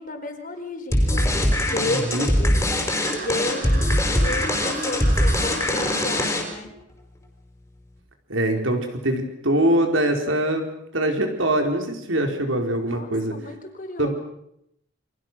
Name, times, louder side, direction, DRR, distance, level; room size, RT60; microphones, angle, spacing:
voice 1, 0.0-2.6 3.2-3.9 4.2-6.7 12.9-14.1, left 1 dB, 45° left, 5 dB, 4.3 m, -32 dB
sound 1, 0.9-6.7, left 1 dB, 15° left, 5.0 m, -22 dB
voice 2, 1.9-2.3 8.3-13.4 14.0-14.1, right 1 dB, 80° right, 4 dB, 4.5 m, -23 dB
sound 2, 2.7-6.2, right 3 dB, 50° right, 4.7 m, -36 dB
29.0 x 24.0 x 6.3 m, 0.77 s
head